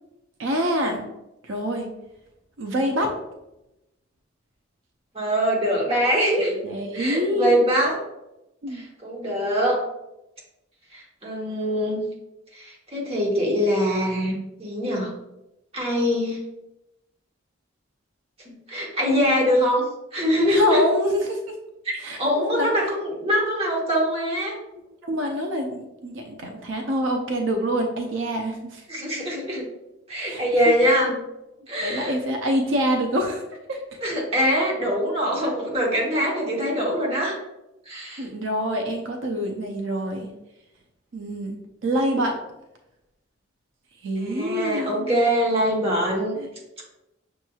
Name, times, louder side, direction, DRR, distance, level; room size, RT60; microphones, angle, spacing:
voice 1, 0.4-1.0 1.4-1.9 2.6-3.1 6.6-7.7 8.6-8.8 20.5-21.6 22.0-22.8 25.0-28.8 30.2-30.4 31.1-31.2 31.7-33.4 33.7-33.8 38.2-40.3 41.1-41.6 41.8-42.4 44.0-45.2 46.4-46.5, equal, 80° right, 3 dB, 0.5 m, -26 dB
voice 2, 5.1-6.6 6.9-8.0 8.7-9.8 10.9-12.0 12.5-15.1 15.7-16.4 18.5-19.8 20.1-20.8 21.8-24.5 28.9-29.6 30.1-31.1 31.7-32.2 34.0-37.4 37.9-38.3 44.2-46.4, equal, 30° right, -3 dB, 1.1 m, -23 dB
6.3 x 3.0 x 2.3 m, 0.92 s
head